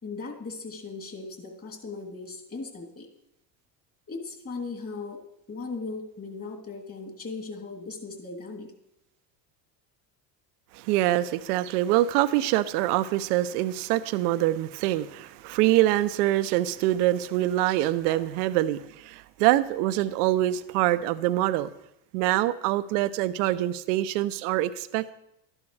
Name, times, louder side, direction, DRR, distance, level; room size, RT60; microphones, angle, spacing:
voice 1, 0.0-3.1 4.1-5.2 5.5-8.7 18.1-18.2, left 4 dB, 30° left, 0 dB, 3.0 m, -38 dB
voice 2, 10.7-21.7 22.1-25.1, right 14 dB, 80° right, 13 dB, 0.7 m, -25 dB
12.5 x 11.0 x 3.3 m, 0.81 s
supercardioid pair, 95°, 47 cm